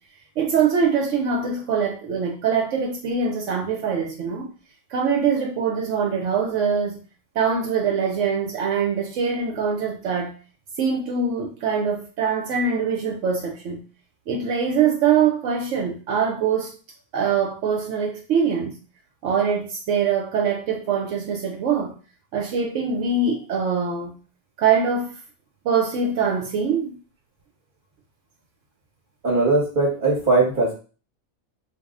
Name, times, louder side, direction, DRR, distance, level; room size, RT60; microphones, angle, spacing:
voice 1, 0.4-4.5 4.9-7.0 7.4-10.3 10.8-13.8 14.3-16.7 17.1-18.8 19.2-21.9 22.3-24.2 24.6-25.1 25.6-27.0, right 6 dB, 70° right, 2 dB, 0.9 m, -23 dB
voice 2, 29.2-30.7, right 3 dB, 40° right, -5 dB, 1.0 m, -19 dB
2.6 x 2.0 x 3.5 m, 0.35 s
omnidirectional pair, 1.4 m